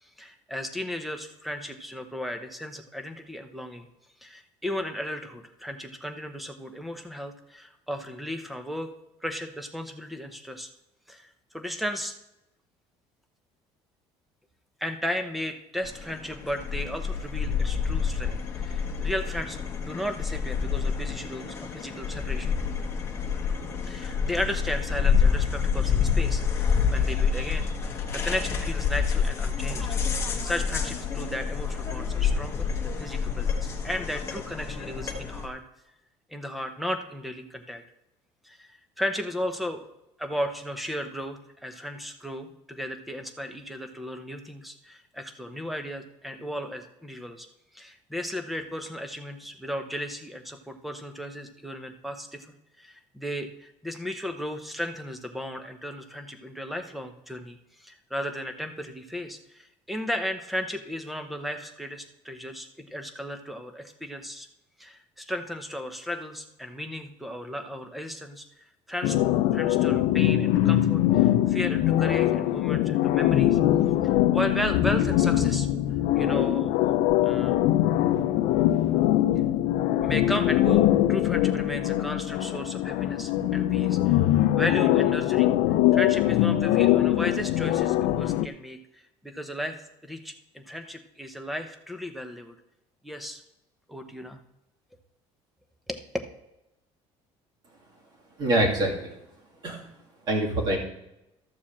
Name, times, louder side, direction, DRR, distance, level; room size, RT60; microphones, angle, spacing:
voice 1, 0.0-3.9 4.2-8.9 9.2-10.7 11.1-12.1 14.8-22.6 23.9-27.7 28.1-30.0 30.4-35.6 36.3-37.8 38.4-39.8 40.2-47.5 47.7-52.5 52.8-64.5 64.8-69.2 69.5-73.6 74.3-75.7 76.1-76.7 77.2-77.6 80.0-85.6 85.9-92.5 93.0-93.4 93.9-94.4 95.9-96.0, equal, ahead, 7 dB, 0.7 m, -35 dB
sound 1, 15.8-35.5, left 6 dB, 20° left, 1.2 m, -28 dB
sound 2, 69.0-88.5, left 13 dB, 85° left, 0.5 m, -22 dB
voice 2, 98.4-99.1 99.6-99.8 100.3-100.8, right 1 dB, 35° right, -1 dB, 2.5 m, -24 dB
13.0 x 4.8 x 7.2 m, 0.89 s
cardioid pair, 180°, 12 cm